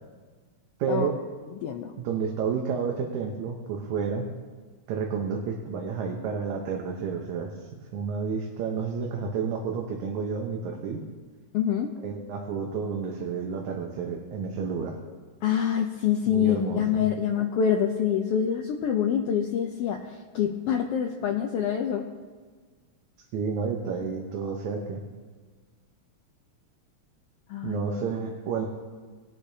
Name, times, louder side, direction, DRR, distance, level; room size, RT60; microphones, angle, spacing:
voice 1, 0.8-1.2 2.0-4.3 4.9-11.0 12.0-15.0 16.3-16.8 23.3-25.0 27.6-28.7, right 5 dB, 80° right, 1 dB, 2.3 m, -30 dB
voice 2, 1.5-1.9 11.5-11.9 15.4-22.1 27.5-27.9, left 8 dB, 85° left, 3 dB, 1.3 m, -26 dB
20.0 x 8.4 x 2.7 m, 1.5 s
omnidirectional pair, 3.4 m